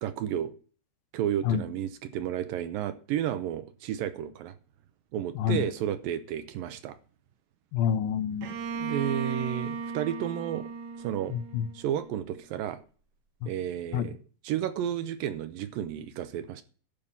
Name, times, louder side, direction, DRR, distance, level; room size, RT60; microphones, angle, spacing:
voice 1, 0.0-0.5 1.1-4.5 5.1-7.0 8.8-10.7 11.0-11.4 11.7-12.8 13.5-14.2 14.4-16.6, right 10 dB, 80° right, 2.4 m, -32 dB
voice 2, 5.4-5.7 7.7-8.6 11.3-11.7 13.4-13.5 13.9-14.1, left 8 dB, 80° left, 2.4 m, -28 dB
Bowed string instrument, 8.4-12.2, right 5 dB, 60° right, 1.6 m, -36 dB
12.0 x 5.5 x 8.4 m
omnidirectional pair, 4.4 m